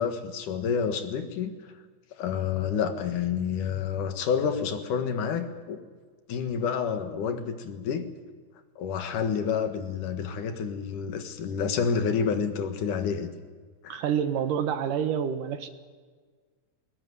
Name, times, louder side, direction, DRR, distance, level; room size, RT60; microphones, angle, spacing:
voice 1, 0.0-1.5 2.1-5.8 6.3-8.0 8.8-13.3 13.8-14.0, left 6 dB, 75° left, 8 dB, 3.2 m, -29 dB
voice 2, 13.9-15.7, right 8 dB, 80° right, 9 dB, 2.9 m, -28 dB
20.5 x 20.0 x 9.6 m, 1.5 s
omnidirectional pair, 3.7 m